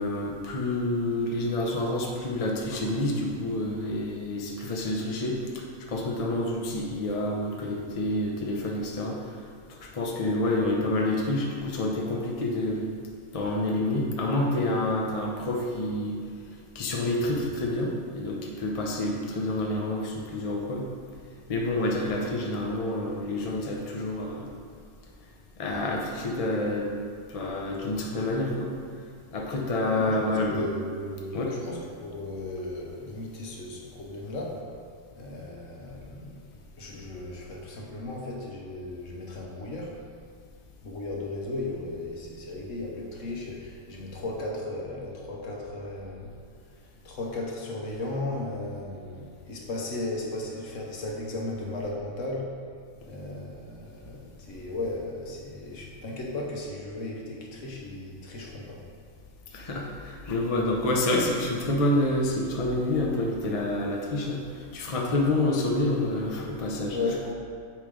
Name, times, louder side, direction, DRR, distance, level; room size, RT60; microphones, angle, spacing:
voice 1, 0.0-5.4 5.9-9.2 9.9-12.9 13.3-16.2 16.7-20.8 21.5-24.5 25.6-26.9 27.3-28.7 29.3-30.7 31.3-31.5 59.5-64.4 64.7-67.0, left 1 dB, 35° left, -1 dB, 0.7 m, -28 dB
voice 2, 29.9-34.6 35.1-36.4 36.8-40.0 40.8-46.3 46.8-52.6 53.0-58.8 66.9-67.3, left 2 dB, 65° left, -1 dB, 1.3 m, -35 dB
8.6 x 3.2 x 5.0 m, 2.1 s
omnidirectional pair, 1.4 m